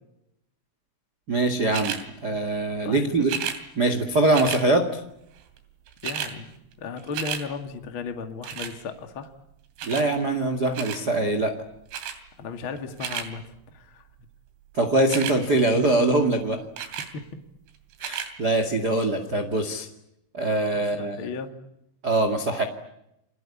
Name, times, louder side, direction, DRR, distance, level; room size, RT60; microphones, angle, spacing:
voice 1, 1.3-1.9 2.2-3.3 3.7-5.0 9.8-11.5 14.7-16.6 18.0-19.9 20.3-21.2 22.0-22.6, right 2 dB, 45° right, 7 dB, 1.2 m, -23 dB
sound 1, 1.7-2.0 3.2-3.6 4.3-4.6 5.6-5.7 5.9-6.3 6.7-7.4 8.4-8.8 9.8-10.1 10.7-11.0 11.9-12.2 12.8-13.3 15.0-15.4 16.8-17.1 17.9-18.3 19.0-19.1, right 8 dB, 90° right, 5.3 m, -32 dB
voice 2, 2.8-3.3 6.0-6.5 6.8-9.3 12.4-14.1 17.1-17.2 20.7-21.5, left 5 dB, 50° left, 6 dB, 1.6 m, -35 dB
30.0 x 22.5 x 8.5 m, 0.82 s
omnidirectional pair, 5.8 m